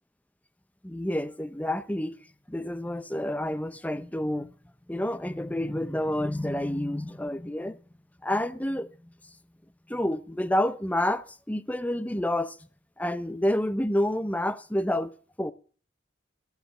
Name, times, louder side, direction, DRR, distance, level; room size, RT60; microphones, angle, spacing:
voice 1, 0.8-2.2 2.5-4.5 4.9-7.8 8.2-8.9 9.9-12.6 13.0-15.1 15.4-15.5, left 1 dB, 10° left, 0.6 m, -29 dB
14.5 x 8.1 x 7.8 m
head